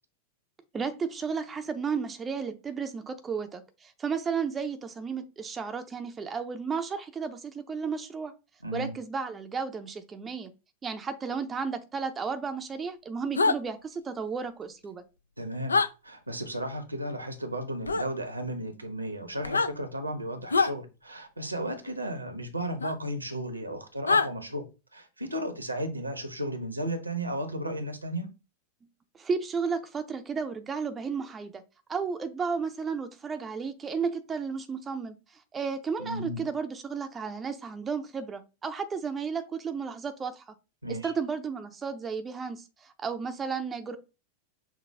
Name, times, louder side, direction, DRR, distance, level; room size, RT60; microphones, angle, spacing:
voice 1, 0.7-8.3 8.7-10.5 10.8-15.0 29.1-31.6 31.9-40.4 40.9-44.0, right 5 dB, 20° right, 0.5 m, -33 dB
voice 2, 8.6-9.0 15.4-15.8 16.0-24.6 24.9-28.3 36.0-36.5 40.8-41.1, right 1 dB, 85° right, 1.0 m, -34 dB
sound 1, 13.4-13.6 15.7-15.9 17.9-18.1 19.4-19.7 20.5-20.7 22.8-22.9 24.1-24.3, left 4 dB, 75° left, 0.3 m, -24 dB
6.1 x 2.3 x 3.4 m
figure-of-eight pair, 90°, 0 cm